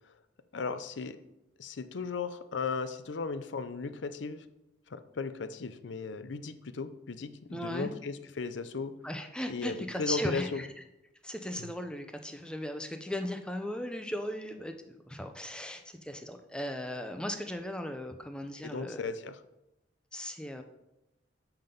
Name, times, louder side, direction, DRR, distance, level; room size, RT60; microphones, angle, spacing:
voice 1, 0.5-1.2 1.6-4.4 4.9-8.9 9.5-10.6 11.6-11.7 18.6-19.4, left 4 dB, 80° left, 12 dB, 0.6 m, -36 dB
voice 2, 7.5-7.9 9.0-10.7 11.2-19.1 20.1-20.6, left 1 dB, 5° left, 6 dB, 0.6 m, -37 dB
5.8 x 5.4 x 6.8 m, 0.92 s
head